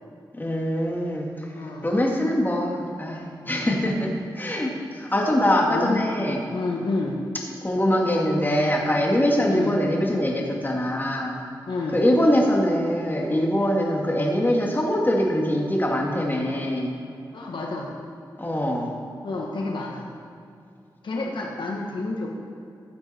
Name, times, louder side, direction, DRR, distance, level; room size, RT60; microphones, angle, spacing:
voice 1, 0.3-1.5 1.8-6.4 7.6-11.4 11.9-16.9 18.4-18.9, equal, 25° left, -1 dB, 2.3 m, -23 dB
voice 2, 1.5-1.9 3.4-3.7 5.1-5.4 5.7-6.0 6.5-7.2 9.5-9.8 11.7-12.0 17.3-17.9 19.2-20.1 21.0-22.3, left 3 dB, 75° left, -1 dB, 1.4 m, -29 dB
15.5 x 7.8 x 4.5 m, 2.5 s
cardioid pair, 55°, 8 cm